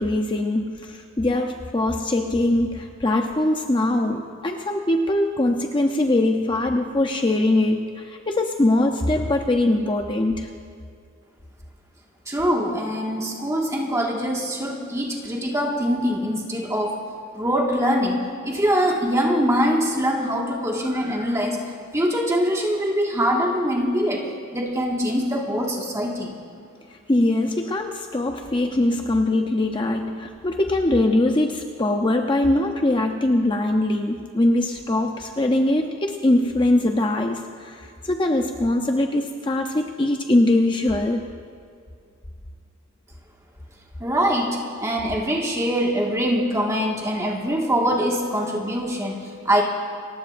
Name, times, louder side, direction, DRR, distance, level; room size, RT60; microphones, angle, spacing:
voice 1, 0.0-10.5 26.9-41.3, left 1 dB, 25° left, 3 dB, 0.6 m, -22 dB
voice 2, 12.3-17.0 17.4-21.6 21.9-26.4 44.0-49.6, equal, 15° right, -1 dB, 1.7 m, -23 dB
28.5 x 15.0 x 2.6 m, 2.3 s
head